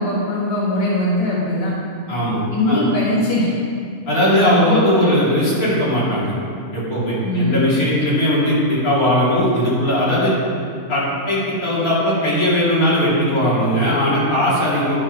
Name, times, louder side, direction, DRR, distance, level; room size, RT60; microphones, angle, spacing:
voice 1, 0.0-1.7 2.5-3.5 4.3-5.2 7.2-7.7, left 1 dB, 40° left, -6 dB, 1.7 m, -20 dB
voice 2, 2.1-2.9 4.1-6.3 6.7-10.3 10.9-15.0, equal, 75° left, -8 dB, 3.1 m, -18 dB
12.0 x 4.9 x 5.7 m, 2.4 s
omnidirectional pair, 1.5 m